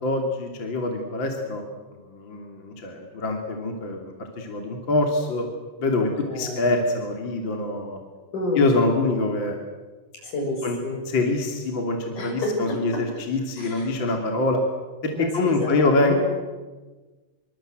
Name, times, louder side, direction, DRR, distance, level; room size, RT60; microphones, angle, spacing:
voice 1, 0.0-1.6 2.0-5.5 5.8-6.1 6.3-8.0 8.5-9.6 10.6-10.8 11.1-14.6 15.0-16.2, left 2 dB, 35° left, 3 dB, 3.1 m, -25 dB
voice 2, 6.0-6.6 8.3-8.6 10.2-11.0 12.2-13.0 13.6-13.9 15.1-16.3, left 2 dB, 55° left, 1 dB, 8.3 m, -29 dB
26.5 x 24.5 x 7.9 m, 1.3 s
omnidirectional pair, 4.4 m